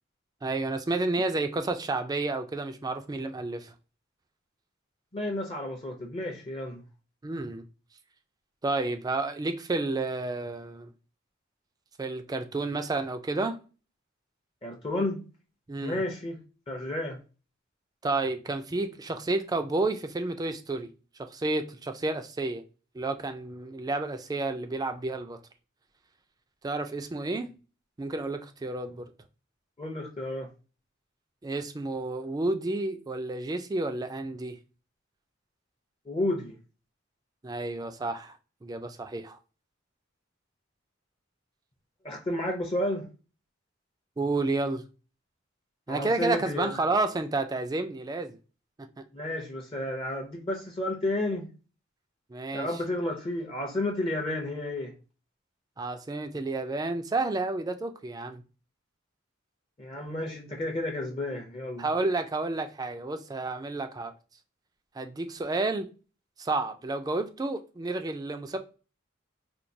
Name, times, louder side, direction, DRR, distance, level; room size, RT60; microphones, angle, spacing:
voice 1, 0.4-3.7 7.2-7.6 8.6-10.9 12.0-13.6 15.7-16.0 18.0-20.9 21.2-22.6 22.9-25.4 26.6-27.5 28.0-29.1 31.4-34.6 37.4-38.4 38.6-39.4 44.2-44.8 45.9-48.4 52.3-52.7 55.8-58.4 61.8-64.1 65.0-65.9 66.4-68.6, right 2 dB, 20° right, 0.3 m, -30 dB
voice 2, 5.1-6.8 14.6-15.2 15.8-16.4 16.7-17.2 29.8-30.5 36.1-36.5 42.0-43.1 45.9-46.8 49.1-51.5 52.5-54.9 59.8-61.8, left 1 dB, 30° left, 0.6 m, -31 dB
4.4 x 2.3 x 2.6 m
head